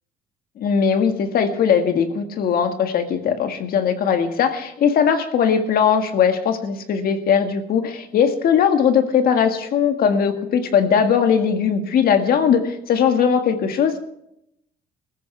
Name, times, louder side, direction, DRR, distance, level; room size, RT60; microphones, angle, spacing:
voice 1, 0.6-14.0, left 7 dB, 60° left, 6 dB, 1.9 m, -19 dB
21.0 x 14.5 x 3.4 m, 0.80 s
cardioid pair, 110°, 17 cm